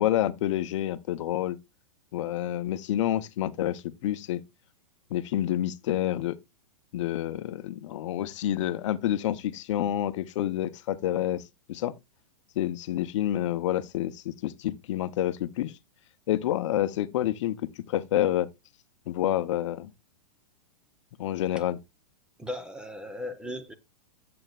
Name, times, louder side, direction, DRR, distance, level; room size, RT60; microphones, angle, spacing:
voice 1, 0.0-1.6 2.1-4.4 5.1-6.4 6.9-11.4 11.7-11.9 12.6-15.7 16.3-18.5 19.1-19.9 21.2-21.8, left 12 dB, 60° left, 0.7 m, -28 dB
voice 2, 22.4-23.7, left 1 dB, 5° right, 0.6 m, -37 dB
11.0 x 7.7 x 2.3 m
hypercardioid pair, 150°, 18 cm